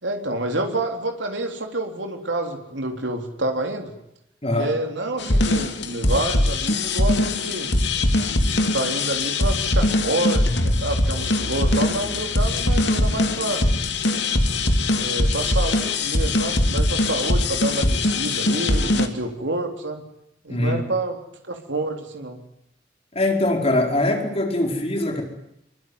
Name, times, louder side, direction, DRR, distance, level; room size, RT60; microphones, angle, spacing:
voice 1, 0.0-3.9 4.6-7.7 8.5-13.6 14.9-20.0 20.4-21.2 21.4-22.4, right 2 dB, 80° right, 4 dB, 3.7 m, -28 dB
voice 2, 4.4-4.7 20.5-20.8 23.1-25.2, left 1 dB, 35° left, 3 dB, 4.6 m, -22 dB
sound 1, 5.2-19.1, left 2 dB, 70° left, 2.6 m, -21 dB
25.5 x 23.5 x 9.6 m, 0.78 s
head